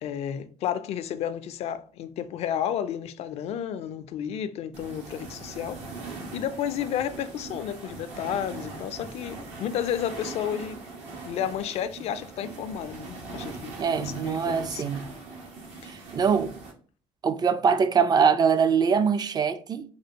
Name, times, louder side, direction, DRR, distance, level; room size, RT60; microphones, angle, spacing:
voice 1, 0.0-5.8 6.3-10.8 11.2-13.7 14.0-15.0 15.8-15.9, left 9 dB, 65° left, 0.4 m, -32 dB
sound 1, 4.7-16.7, right 3 dB, 80° right, 1.1 m, -41 dB
voice 2, 13.8-15.0 15.9-16.5 17.2-19.8, right 6 dB, 35° right, 0.4 m, -23 dB
3.3 x 2.5 x 2.8 m
supercardioid pair, 85°, 12 cm